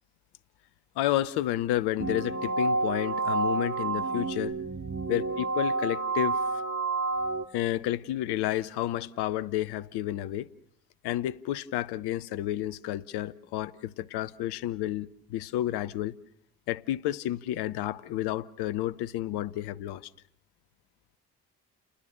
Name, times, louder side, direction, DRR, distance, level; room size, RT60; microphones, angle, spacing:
voice 1, 1.0-4.5 5.1-6.4 7.5-10.5 11.0-16.1 16.7-20.1, left 13 dB, 70° left, 1.0 m, -31 dB
sound 1, 2.0-7.4, right 3 dB, 35° right, 2.6 m, -29 dB
30.0 x 20.5 x 6.7 m
figure-of-eight pair, 40°, 41 cm